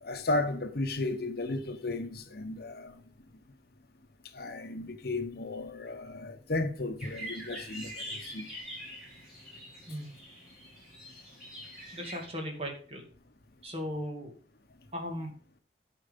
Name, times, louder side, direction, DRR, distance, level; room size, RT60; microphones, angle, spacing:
voice 1, 0.0-2.9 4.3-8.5, left 2 dB, 55° left, 0.9 m, -34 dB
sound 1, 7.0-12.2, equal, 5° right, 5.0 m, -44 dB
voice 2, 11.9-13.0 13.6-14.3 14.9-15.3, equal, 35° right, 2.2 m, -37 dB
10.5 x 4.6 x 5.2 m
head